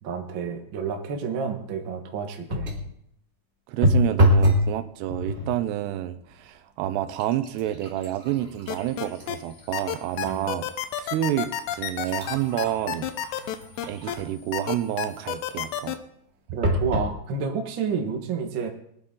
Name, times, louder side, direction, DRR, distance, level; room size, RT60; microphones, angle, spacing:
voice 1, 0.0-2.7 10.2-10.6 16.5-18.7, right 6 dB, 65° right, 3 dB, 1.2 m, -30 dB
sound 1, 2.5-2.9 3.8-4.7 5.1-5.6 6.3-6.5 6.8-10.4 10.9-11.0 11.7-14.4 16.6-17.1 17.8-17.9 18.2-18.3, equal, 20° right, 1.7 m, -26 dB
voice 2, 3.7-10.6 11.0-13.1 13.9-16.0, right 12 dB, 85° right, 11 dB, 2.9 m, -29 dB
sound 2, 8.7-9.4 9.7-14.2 14.5-16.0, left 11 dB, 90° left, 3.1 m, -29 dB
22.5 x 10.5 x 3.8 m, 0.71 s
omnidirectional pair, 4.8 m